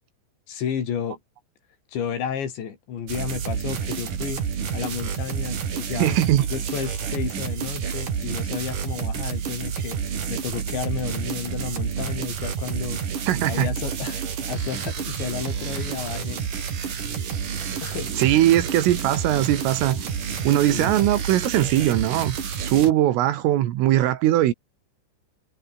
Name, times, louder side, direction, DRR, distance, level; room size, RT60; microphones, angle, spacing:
voice 1, 0.5-1.2 1.9-4.4 4.7-6.2 6.5-13.0 13.5-14.2 14.5-16.7 17.8-18.1 20.7-21.0, left 8 dB, 65° left, 6.0 m, -32 dB
sound 1, 3.1-22.9, right 7 dB, 45° right, 4.2 m, -29 dB
voice 2, 6.0-6.4 13.3-13.7 18.2-20.0 20.5-24.5, right 13 dB, 80° right, 4.3 m, -20 dB
omnidirectional pair, 5.8 m